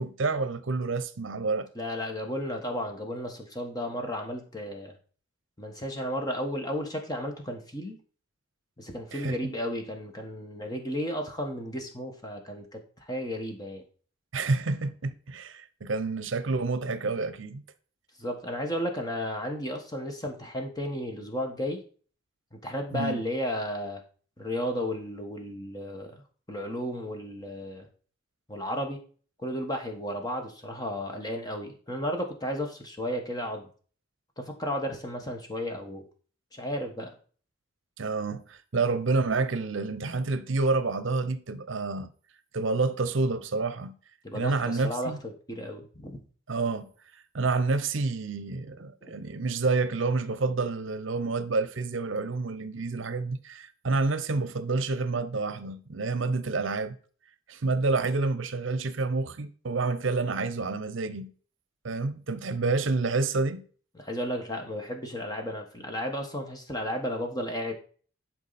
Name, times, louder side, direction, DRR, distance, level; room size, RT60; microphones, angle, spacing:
voice 1, 0.0-1.7 9.1-9.5 14.3-17.6 22.9-23.2 38.0-42.1 42.5-44.0 44.3-45.2 46.5-46.9 47.3-57.0 57.5-61.3 61.8-63.7, right 3 dB, 70° right, 0.7 m, -28 dB
voice 2, 1.7-4.9 5.6-8.0 8.8-13.8 18.2-21.8 22.5-24.0 24.4-26.2 26.5-27.9 28.5-29.0 29.4-33.6 34.4-36.0 36.5-37.1 44.2-46.2 63.9-67.7, equal, 20° left, 1.3 m, -33 dB
11.0 x 4.6 x 4.2 m
head